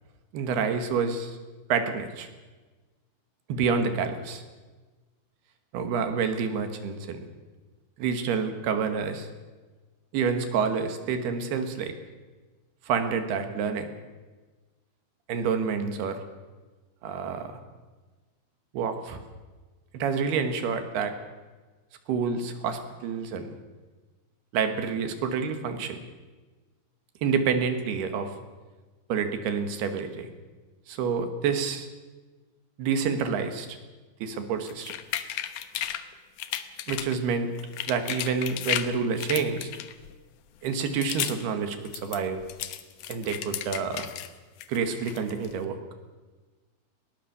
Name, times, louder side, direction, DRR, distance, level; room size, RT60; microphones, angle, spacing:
voice 1, 0.3-1.4 1.7-2.3 3.5-4.4 5.7-7.2 8.0-9.3 10.1-11.9 12.9-13.9 15.3-16.2 17.0-17.5 18.7-19.2 19.9-21.1 22.1-23.5 24.5-26.0 27.2-28.3 29.1-30.3 30.9-31.9 32.8-33.8 34.2-34.9 36.9-37.5 37.9-39.7 40.6-42.4 43.1-44.1 44.7-45.8, right 6 dB, 70° right, 8 dB, 3.6 m, -28 dB
sound 1, 34.7-36.0 36.4-37.2 37.6-38.9 39.2-40.1 40.6-41.4 41.7-44.3 44.6-45.5, left 12 dB, 70° left, 1.9 m, -33 dB
20.5 x 18.5 x 7.1 m, 1.3 s
omnidirectional pair, 4.9 m